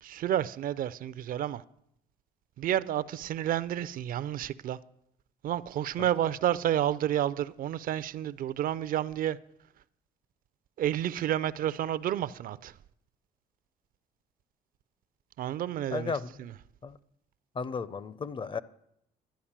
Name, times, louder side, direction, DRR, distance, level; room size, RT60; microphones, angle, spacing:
voice 1, 0.0-1.6 2.6-4.8 5.4-9.4 10.8-12.8 15.4-16.1 16.4-16.5, right 11 dB, 55° right, 0.5 m, -30 dB
voice 2, 15.9-16.3 16.8-17.0 17.5-18.6, left 5 dB, 30° left, 0.5 m, -34 dB
11.5 x 8.4 x 7.3 m
cardioid pair, 110°, 17 cm